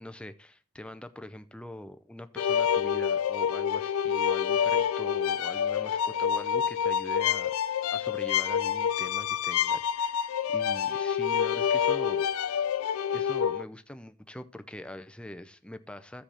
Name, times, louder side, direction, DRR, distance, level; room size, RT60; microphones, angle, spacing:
voice 1, 0.0-12.7 13.1-16.2, left 1 dB, 5° left, 0.5 m, -43 dB
sound 1, 2.4-13.6, left 8 dB, 75° left, 0.4 m, -27 dB
14.5 x 5.1 x 4.3 m
head